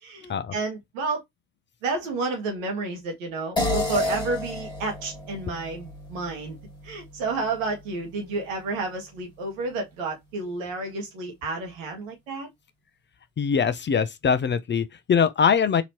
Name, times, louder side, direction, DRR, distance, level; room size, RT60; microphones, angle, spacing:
voice 1, 0.0-1.2 1.8-6.6 6.8-12.5, right 3 dB, 85° right, 1.5 m, -30 dB
sound 1, 3.6-8.3, left 2 dB, 10° left, 1.7 m, -32 dB
voice 2, 13.4-15.8, left 6 dB, 30° left, 0.5 m, -22 dB
4.0 x 2.8 x 3.0 m
hypercardioid pair, 70°, 39 cm